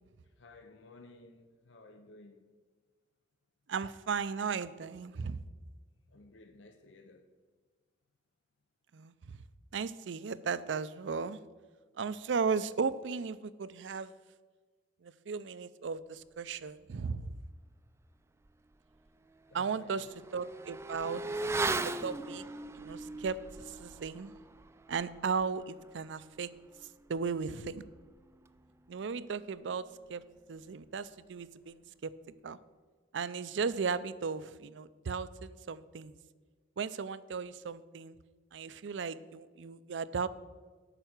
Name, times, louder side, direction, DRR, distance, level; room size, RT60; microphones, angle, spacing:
voice 1, 0.4-2.5 6.1-7.3 19.5-20.2, left 2 dB, 85° left, 0.7 m, -55 dB
voice 2, 3.7-5.4 8.9-9.1 9.7-11.4 12.0-14.1 15.0-17.4 19.5-20.1 20.3-21.3 21.8-22.5 22.7-24.3 24.9-26.5 27.1-27.8 28.9-30.2 30.5-32.1 32.4-32.6 33.1-36.2 36.8-38.2 38.5-40.3, right 5 dB, 75° right, 0.5 m, -36 dB
Motorcycle / Accelerating revving vroom, 18.4-18.5 18.9-28.9 29.2-29.3, right 3 dB, 15° right, 0.3 m, -40 dB
8.9 x 5.8 x 8.0 m
head